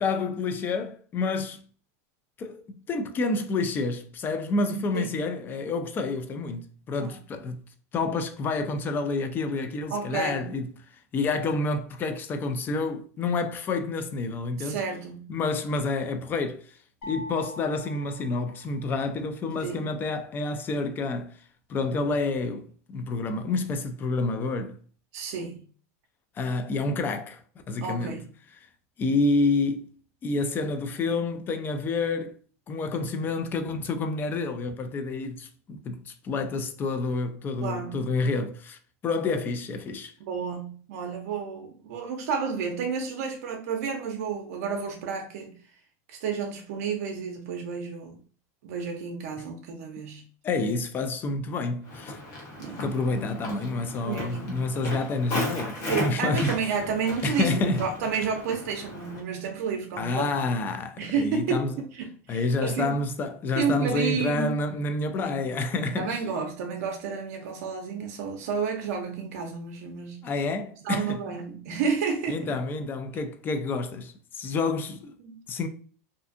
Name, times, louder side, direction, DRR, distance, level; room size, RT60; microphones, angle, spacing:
voice 1, 0.0-1.6 2.4-7.6 7.9-10.7 11.1-14.8 15.3-16.7 17.0-21.3 21.7-24.8 26.4-27.4 27.7-28.2 29.0-29.9 30.2-32.3 32.7-38.8 39.0-40.1 50.4-52.2 52.7-56.6 57.2-57.8 60.0-61.8 62.3-66.2 70.2-71.2 72.3-75.1 75.5-75.7, left 3 dB, 25° left, 0.3 m, -28 dB
voice 2, 9.9-10.6 14.6-15.3 19.6-19.9 25.1-25.6 27.8-28.3 37.6-38.1 40.2-45.6 46.1-48.2 48.6-50.2 52.6-52.8 54.0-54.7 55.8-60.4 61.0-63.0 63.6-64.6 65.1-65.4 66.0-70.3 70.8-72.6 75.2-75.3, right 5 dB, 70° right, 0.5 m, -31 dB
sound 1, 17.0-19.2, left 1 dB, 75° left, 0.9 m, -42 dB
Walk footsteps, 51.8-59.2, left 1 dB, 40° left, 1.0 m, -36 dB
2.5 x 2.4 x 2.4 m
supercardioid pair, 135°, 8 cm